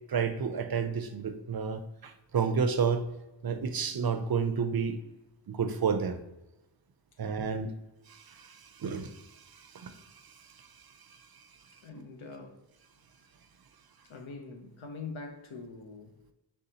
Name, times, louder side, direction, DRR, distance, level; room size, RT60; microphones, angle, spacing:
voice 1, 0.1-3.1 3.4-5.0 5.5-6.2 7.2-7.7 8.1-10.9 11.3-11.5 12.0-12.1, right 6 dB, 55° right, 0.5 m, -31 dB
voice 2, 7.2-7.5 11.8-12.6 14.1-16.1, left 4 dB, 85° left, 0.7 m, -44 dB
5.5 x 3.4 x 2.8 m
wide cardioid pair, 80°, 46 cm